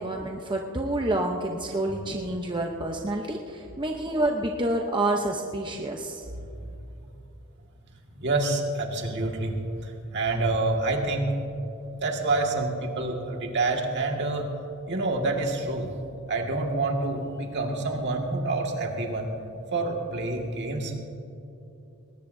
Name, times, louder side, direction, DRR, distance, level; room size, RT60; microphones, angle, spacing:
voice 1, 0.0-6.2, right 1 dB, 20° right, 1 dB, 0.8 m, -28 dB
voice 2, 8.1-11.4 12.0-14.5 14.9-15.9 16.3-19.3 19.7-21.0, right 2 dB, 55° right, 1 dB, 1.9 m, -27 dB
20.5 x 18.5 x 2.7 m, 2.8 s
head